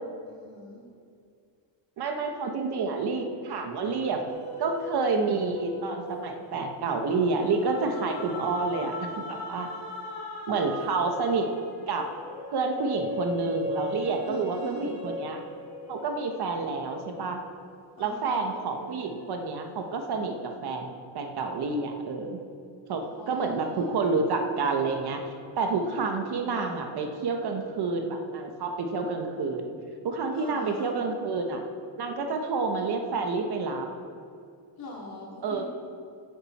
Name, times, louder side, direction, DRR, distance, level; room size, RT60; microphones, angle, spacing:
voice 1, 0.3-0.8 14.0-14.9 18.0-18.5 23.0-23.9 30.3-30.9 34.8-35.6, left 2 dB, 45° left, -4 dB, 3.3 m, -43 dB
voice 2, 2.0-4.2 4.6-9.7 10.5-11.5 11.9-12.1 12.5-15.4 15.9-17.4 18.0-22.4 22.9-25.2 25.6-29.7 30.0-31.6 32.0-33.9 35.4-35.6, right 4 dB, 55° right, 4 dB, 1.2 m, -29 dB
sound 1, 4.3-18.0 18.5-20.1, left 2 dB, 85° left, 2.9 m, -39 dB
15.0 x 8.9 x 4.3 m, 2.3 s
cardioid pair, 170°, 47 cm